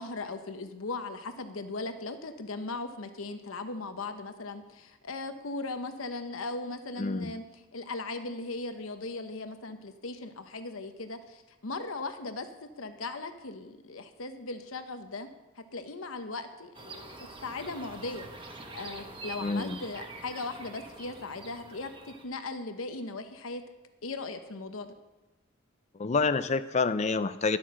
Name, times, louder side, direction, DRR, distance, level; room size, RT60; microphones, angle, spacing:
voice 1, 0.0-15.3 15.6-23.6 24.0-24.9, left 3 dB, 90° left, 8 dB, 1.0 m, -38 dB
voice 2, 7.0-7.3 19.4-19.8 26.0-27.6, left 4 dB, 35° left, 13 dB, 0.4 m, -28 dB
sound 1, 16.7-22.2, right 3 dB, 25° right, 1.1 m, -45 dB
11.5 x 8.5 x 6.3 m, 1.1 s
head